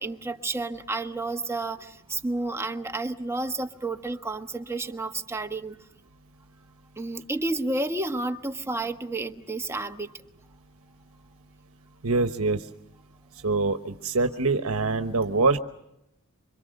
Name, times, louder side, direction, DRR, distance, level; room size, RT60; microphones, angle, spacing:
voice 1, 0.0-5.8 7.0-10.1, right 2 dB, 10° right, 6 dB, 1.3 m, -31 dB
voice 2, 12.0-12.7 13.3-15.6, right 3 dB, 70° right, 8 dB, 1.1 m, -24 dB
26.5 x 25.5 x 6.5 m, 0.85 s
head